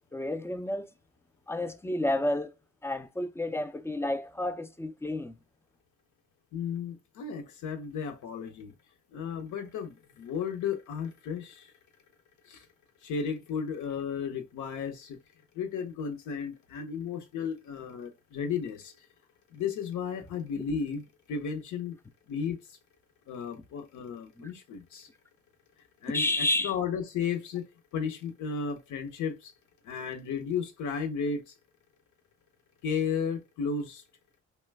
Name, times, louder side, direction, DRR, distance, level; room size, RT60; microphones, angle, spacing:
voice 1, 0.1-0.8 1.5-2.5 2.8-5.3 24.4-24.5 26.1-26.7, left 1 dB, 10° left, 0.3 m, -30 dB
voice 2, 6.5-8.8 9.1-11.7 12.4-12.7 13.0-15.2 15.5-18.9 19.5-22.0 22.3-22.8 23.3-25.1 26.0-27.6 27.9-29.5 29.8-31.5 32.8-34.0, left 6 dB, 75° left, 0.8 m, -34 dB
3.1 x 2.2 x 3.3 m
cardioid pair, 90°, 30 cm